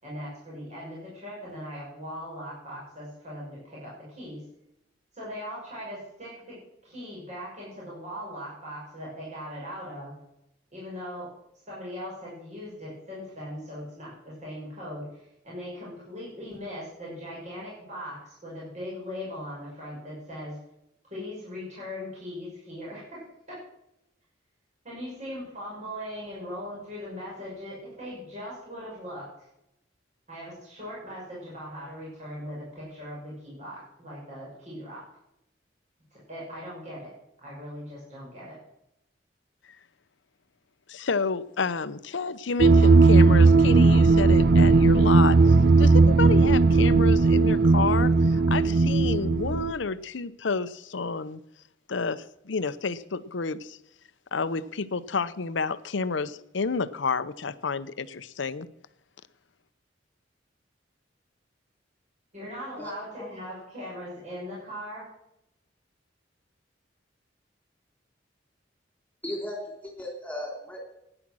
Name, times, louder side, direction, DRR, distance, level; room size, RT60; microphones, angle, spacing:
voice 1, 0.0-4.4 5.1-6.6 6.8-10.1 10.7-11.3 11.7-15.2 15.4-20.6 21.1-23.2 23.5-23.6 24.8-29.5 30.3-35.0 36.1-37.1 37.4-38.6 62.3-65.1, equal, 40° right, -6 dB, 6.3 m, -39 dB
voice 2, 40.9-51.4 51.9-53.8 54.3-58.7, left 4 dB, 85° left, 14 dB, 0.7 m, -30 dB
sound 1, 42.6-49.7, right 3 dB, 60° right, 0.5 m, -17 dB
voice 3, 69.2-70.8, left 1 dB, 10° left, 0 dB, 3.4 m, -36 dB
15.5 x 9.9 x 6.2 m, 0.83 s
head